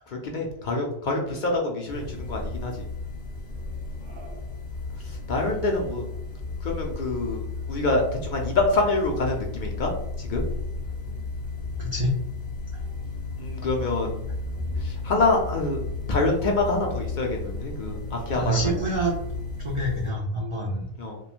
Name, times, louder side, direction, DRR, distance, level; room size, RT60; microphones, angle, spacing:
voice 1, 0.1-2.8 5.0-6.0 6.6-7.4 7.7-9.9 10.2-10.4 13.4-14.2 14.8-15.8 16.1-18.7 21.0-21.2, left 2 dB, 55° left, 0 dB, 0.6 m, -26 dB
sound 1, 1.9-20.1, left 3 dB, 10° left, 0.6 m, -33 dB
voice 2, 11.8-12.2 18.4-19.3 19.6-20.9, right 1 dB, 60° right, -1 dB, 0.3 m, -26 dB
3.1 x 2.2 x 2.4 m, 0.76 s
omnidirectional pair, 1.1 m